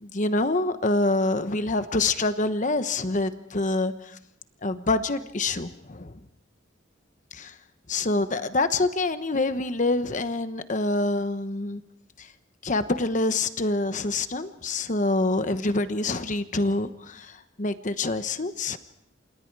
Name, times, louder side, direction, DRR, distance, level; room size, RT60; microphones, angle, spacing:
voice 1, 0.0-3.9 4.6-6.1 7.3-7.5 7.9-11.8 12.6-18.8, left 2 dB, 40° left, 10 dB, 1.1 m, -26 dB
28.5 x 27.5 x 4.8 m, 0.73 s
head